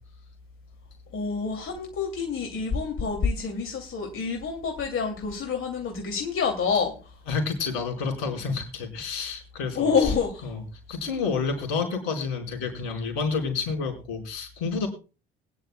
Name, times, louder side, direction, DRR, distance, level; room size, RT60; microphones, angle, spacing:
voice 1, 1.1-7.2 9.7-10.6, left 5 dB, 45° left, 2.5 m, -27 dB
voice 2, 7.3-10.1 10.4-10.6 10.9-14.9, left 5 dB, 65° left, 4.6 m, -29 dB
21.5 x 10.5 x 2.2 m
figure-of-eight pair, 55°, 30 cm